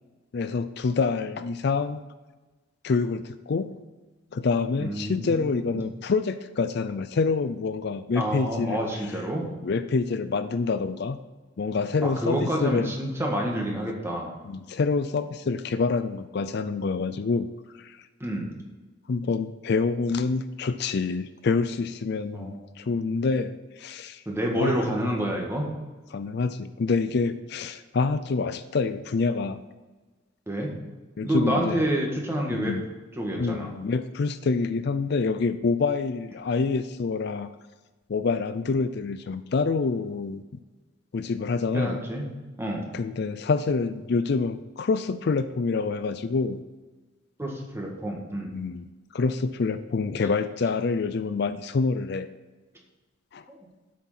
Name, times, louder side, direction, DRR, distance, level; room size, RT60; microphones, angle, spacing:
voice 1, 0.3-2.0 2.8-3.7 4.3-8.8 9.6-11.2 11.6-12.9 14.4-17.5 17.8-18.1 19.1-24.2 24.6-25.0 26.1-29.6 31.2-31.8 32.5-32.8 33.4-37.5 38.1-40.4 41.1-42.0 42.9-46.6 48.5-48.9 49.1-52.3 53.3-53.4, left 4 dB, 55° left, 11 dB, 0.4 m, -27 dB
voice 2, 4.8-5.8 8.2-9.5 12.0-14.3 18.2-18.6 22.3-22.6 24.3-25.7 30.5-30.7 31.2-32.7 33.1-33.7 41.7-42.3 42.6-42.9 47.4-48.5 53.5-53.6, right 1 dB, 15° right, -1 dB, 1.7 m, -28 dB
8.1 x 6.4 x 5.8 m, 1.2 s
head